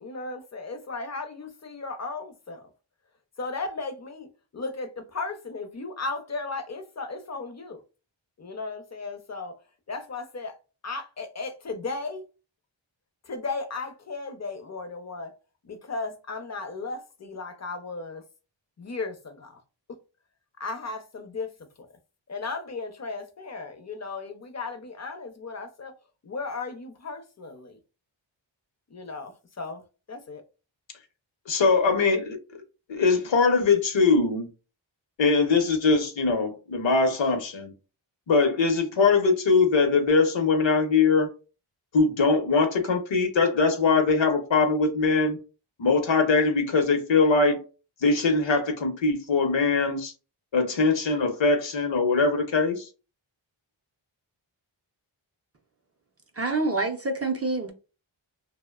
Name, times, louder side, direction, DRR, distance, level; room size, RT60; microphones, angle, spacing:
voice 1, 0.0-2.6 3.4-4.3 4.5-7.8 8.4-9.5 9.9-10.5 10.8-12.2 13.3-15.3 15.6-18.2 18.8-19.5 20.6-21.5 22.3-25.9 26.2-27.8 28.9-29.8 30.1-30.4, left 3 dB, 35° left, 0.5 m, -35 dB
voice 2, 31.5-32.4 32.9-34.5 35.2-37.7 38.3-41.3 41.9-45.4 45.8-47.6 48.0-50.1 50.5-52.9, left 4 dB, 65° left, 0.8 m, -22 dB
voice 3, 56.3-57.7, right 3 dB, 30° right, 0.5 m, -26 dB
2.6 x 2.1 x 2.2 m
wide cardioid pair, 60°, 48 cm